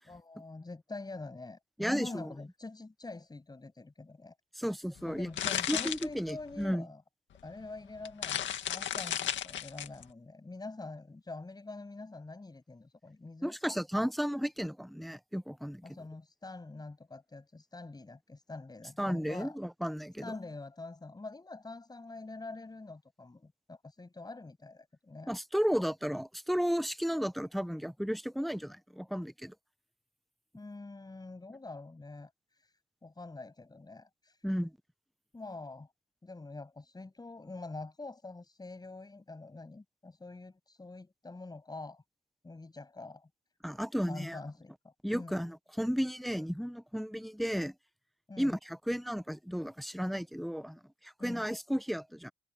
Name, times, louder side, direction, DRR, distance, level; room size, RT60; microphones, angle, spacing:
voice 1, 0.1-4.4 4.7-7.0 7.4-13.6 15.8-19.6 20.2-25.3 30.5-34.5 35.3-35.9 36.2-42.0 42.4-43.3 44.1-45.4 48.3-48.5 51.2-51.5, left 3 dB, 20° left, 7.6 m, -45 dB
voice 2, 1.8-2.3 4.6-5.3 5.7-6.9 13.4-15.8 19.0-20.3 25.3-29.5 34.4-34.7 43.6-44.4 45.0-47.7 48.4-52.3, equal, ahead, 1.0 m, -33 dB
sound 1, 5.0-6.7 7.5-7.6 7.9-10.0, left 10 dB, 70° left, 2.1 m, -34 dB
cardioid pair, 90°, 20 cm